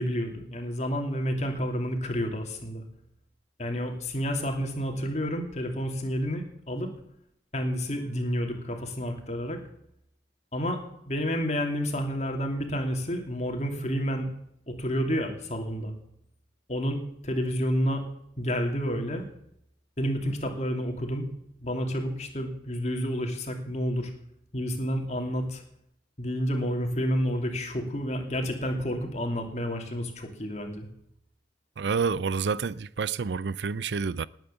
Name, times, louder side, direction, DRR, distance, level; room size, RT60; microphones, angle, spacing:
voice 1, 0.0-2.8 3.6-6.9 7.5-9.6 10.5-10.8 11.1-14.3 14.7-15.9 16.7-18.0 18.4-19.3 20.0-21.3 21.6-24.1 24.5-25.6 26.2-30.9, equal, 40° left, 2.9 m, -30 dB
voice 2, 31.8-34.2, right 5 dB, 75° right, 0.5 m, -28 dB
19.5 x 9.0 x 7.0 m
head